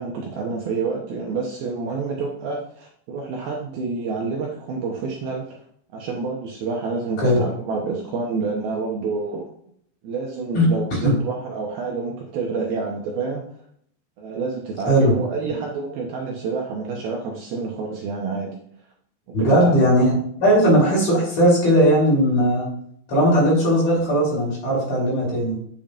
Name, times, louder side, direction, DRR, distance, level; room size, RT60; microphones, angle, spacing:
voice 1, 0.0-5.5 5.9-9.5 10.0-13.4 14.2-18.5 19.3-19.9, right 4 dB, 70° right, -1 dB, 2.5 m, -28 dB
voice 2, 19.3-20.1 20.4-22.7 23.1-25.6, equal, 40° left, -5 dB, 3.7 m, -18 dB
9.0 x 7.3 x 2.5 m, 0.64 s
omnidirectional pair, 5.1 m